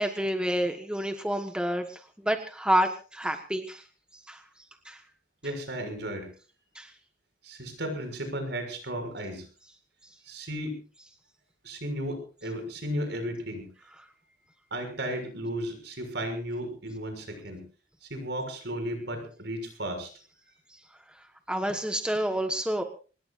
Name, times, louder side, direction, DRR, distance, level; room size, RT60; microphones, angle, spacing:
voice 1, 0.0-3.8 4.3-4.4 4.8-5.0 6.7-6.9 21.5-22.8, right 1 dB, 5° right, 5 dB, 1.4 m, -28 dB
voice 2, 5.4-6.3 7.4-9.5 10.2-10.8 11.6-13.7 14.7-17.6 18.0-20.1, equal, 60° right, 6 dB, 6.6 m, -34 dB
25.5 x 20.5 x 2.6 m, 0.37 s
head